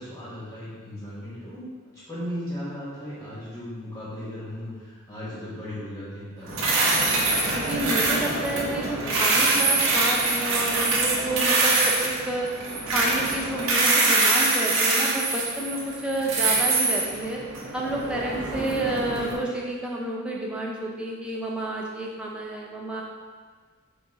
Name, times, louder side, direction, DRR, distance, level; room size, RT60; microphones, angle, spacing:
voice 1, 0.0-1.6 2.1-6.5, equal, 10° left, -11 dB, 1.5 m, -36 dB
sound 1, 6.5-19.3, right 3 dB, 65° right, 0.8 m, -24 dB
voice 2, 7.5-12.5 12.9-17.4 17.7-23.0, right 1 dB, 5° right, -3 dB, 0.5 m, -30 dB
5.5 x 2.6 x 3.7 m, 1.5 s
head